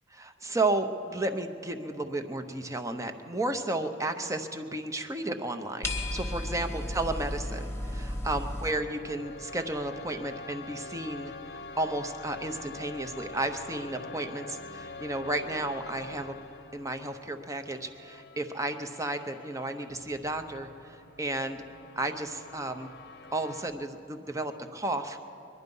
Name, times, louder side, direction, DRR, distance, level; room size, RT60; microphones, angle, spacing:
voice 1, 0.2-7.6 7.9-16.4 16.7-21.6 22.0-22.9 23.3-25.3, right 2 dB, 15° right, 7 dB, 0.7 m, -33 dB
sound 1, 5.8-8.7, left 1 dB, 10° left, 1.1 m, -34 dB
sound 2, 8.6-23.7, left 3 dB, 50° left, 0.8 m, -45 dB
22.5 x 11.0 x 5.4 m, 2.9 s
head